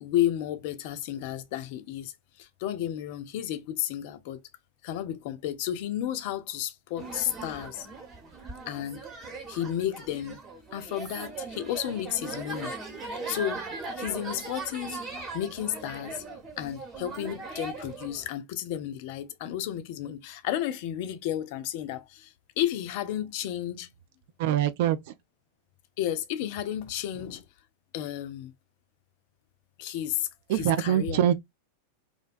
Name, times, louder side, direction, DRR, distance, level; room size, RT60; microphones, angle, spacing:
voice 1, 0.0-4.4 4.8-7.9 8.7-9.0 9.5-10.4 10.7-12.8 13.1-13.6 14.0-15.0 15.3-16.2 16.6-23.9 26.0-27.4 27.9-28.5 29.8-31.3, left 11 dB, 50° left, 0.4 m, -32 dB
sound 1, 7.0-18.3, right 3 dB, 25° right, 0.9 m, -39 dB
voice 2, 24.4-25.1 30.5-31.4, right 11 dB, 50° right, 0.3 m, -24 dB
2.5 x 2.1 x 2.4 m
figure-of-eight pair, 90°, 0 cm